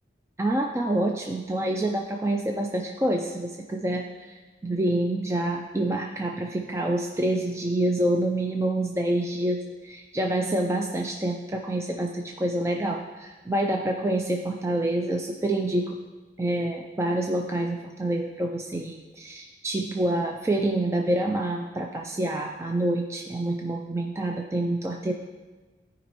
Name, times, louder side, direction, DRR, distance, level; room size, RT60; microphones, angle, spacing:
voice 1, 0.4-16.0 16.4-25.1, right 1 dB, 15° right, 2 dB, 0.3 m, -27 dB
14.0 x 5.0 x 3.0 m, 1.3 s
head